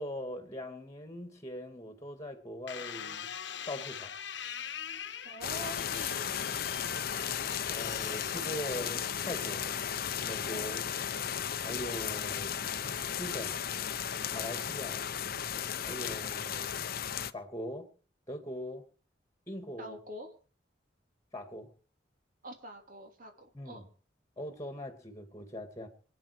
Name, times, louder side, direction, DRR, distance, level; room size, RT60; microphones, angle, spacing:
voice 1, 0.0-3.3 3.7-4.1 7.7-9.7 10.2-10.9 11.6-12.6 13.2-13.6 14.3-15.0 15.9-16.8 17.3-17.9 18.3-18.8 19.5-20.0 21.3-21.7 23.5-23.8 24.4-25.9, equal, 20° left, 2.3 m, -41 dB
sound 1, 2.7-9.1 9.7-10.2, left 8 dB, 70° left, 1.1 m, -43 dB
voice 2, 5.2-7.4 19.8-20.3 22.4-23.9, equal, 50° right, 3.1 m, -46 dB
sound 2, 5.4-17.3, left 8 dB, 55° left, 0.7 m, -35 dB
26.0 x 9.5 x 4.9 m
head